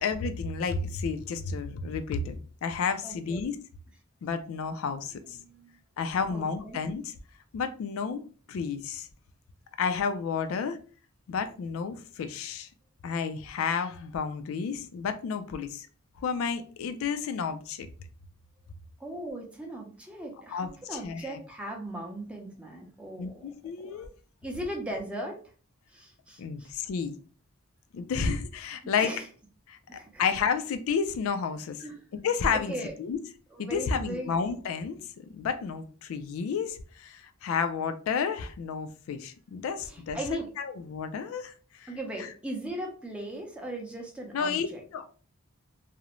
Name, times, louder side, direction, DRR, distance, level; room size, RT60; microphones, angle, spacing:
voice 1, 0.0-3.6 4.2-5.4 6.0-7.1 7.5-8.2 8.5-9.1 9.8-10.8 11.3-12.7 13.0-15.9 16.2-17.9 20.5-21.4 23.2-24.1 26.4-27.1 27.9-29.1 29.7-29.8 30.2-31.8 32.2-32.7 33.0-33.2 33.6-40.2 40.6-41.5 41.8-41.9 44.3-44.7 44.9-45.1, left 6 dB, 75° left, 9 dB, 0.3 m, -31 dB
voice 2, 3.0-3.4 5.4-5.8 6.3-6.8 19.0-23.5 23.8-24.0 24.4-25.4 25.9-26.7 28.8-29.3 29.9-30.2 31.8-32.0 32.5-32.9 33.5-34.4 39.8-40.5 41.9-44.8, right 1 dB, 5° right, 0 dB, 0.4 m, -38 dB
2.5 x 2.0 x 2.8 m, 0.40 s
head